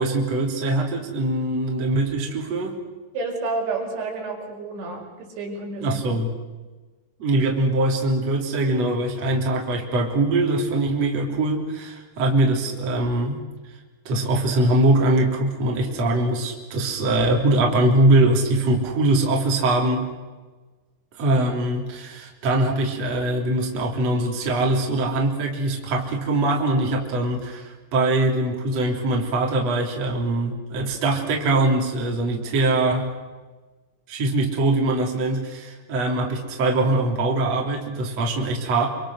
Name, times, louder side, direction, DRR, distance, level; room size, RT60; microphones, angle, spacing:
voice 1, 0.0-2.8 5.8-6.3 7.2-13.4 14.1-20.1 21.1-33.1 34.1-38.9, right 2 dB, 35° right, 0 dB, 4.2 m, -22 dB
voice 2, 3.1-6.0, right 3 dB, 75° right, 0 dB, 7.2 m, -30 dB
27.5 x 26.5 x 6.5 m, 1.3 s
omnidirectional pair, 5.3 m